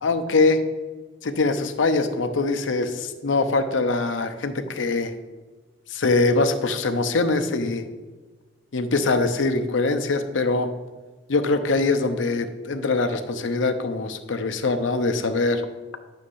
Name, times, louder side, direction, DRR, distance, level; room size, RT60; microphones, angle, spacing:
voice 1, 0.0-0.6 1.2-5.1 5.9-7.9 8.7-10.7 11.3-15.6, left 3 dB, 85° left, 8 dB, 0.6 m, -23 dB
9.8 x 6.4 x 2.6 m, 1.3 s
head